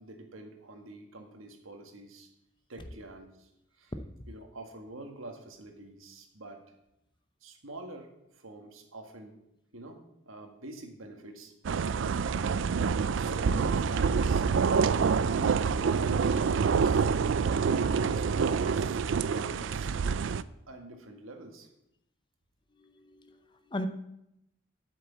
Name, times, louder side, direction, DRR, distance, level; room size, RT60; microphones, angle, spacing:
voice 1, 0.0-2.3 2.7-3.5 3.8-3.9 4.3-6.6 7.4-9.4 9.7-10.0 10.3-11.5 13.2-17.1 17.6-19.9 20.7-21.7, right 1 dB, 90° right, 5 dB, 1.8 m, -45 dB
sound 1, 11.6-20.4, right 5 dB, 70° right, 0.4 m, -27 dB
voice 2, 22.8-23.9, left 1 dB, 25° left, 9 dB, 0.6 m, -38 dB
8.5 x 6.5 x 8.2 m, 0.84 s
head